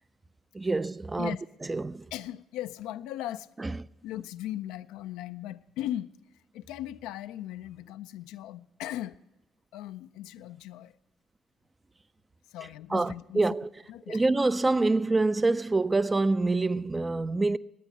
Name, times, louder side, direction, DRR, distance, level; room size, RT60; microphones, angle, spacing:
voice 1, 0.5-1.4 1.7-2.1 3.6-3.7 12.9-13.7 14.1-17.6, right 3 dB, 25° right, 0.4 m, -26 dB
voice 2, 2.1-6.1 6.5-9.2 9.7-10.9 12.5-13.4 13.9-14.3, left 13 dB, 75° left, 0.3 m, -38 dB
10.5 x 8.9 x 8.2 m
hypercardioid pair, 55°, 0 cm